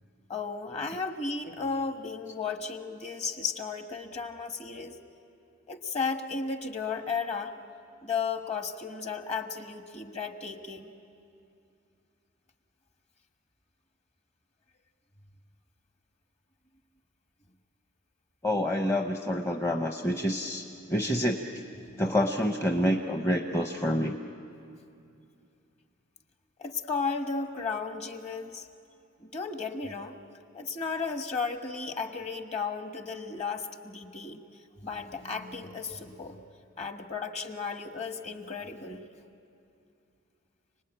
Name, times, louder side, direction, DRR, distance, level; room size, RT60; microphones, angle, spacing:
voice 1, 0.3-5.0 5.7-7.5 8.0-10.9 20.2-20.4 21.8-22.1 26.6-28.7 29.2-30.2 30.5-34.4 34.8-36.4 36.8-39.0, left 5 dB, 30° left, 6 dB, 1.3 m, -34 dB
voice 2, 18.4-20.6 20.9-21.4 22.0-24.1, equal, 15° left, 2 dB, 0.8 m, -27 dB
29.5 x 20.0 x 9.0 m, 2.6 s
head